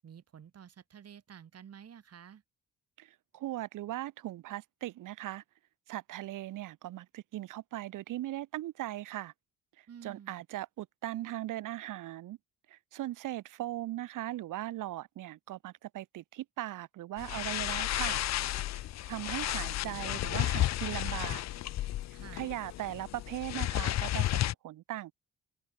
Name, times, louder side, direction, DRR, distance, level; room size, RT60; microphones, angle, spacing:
voice 1, 0.0-2.4 9.9-10.4 22.1-22.5, right 8 dB, 50° right, 7.9 m, -51 dB
voice 2, 3.0-5.4 5.9-9.3 9.8-12.4 12.7-18.2 19.1-21.4 22.3-25.1, right 15 dB, 90° right, 3.0 m, -39 dB
sound 1, 17.2-24.5, left 14 dB, 60° left, 0.6 m, -33 dB
open air
cardioid pair, 115°, 31 cm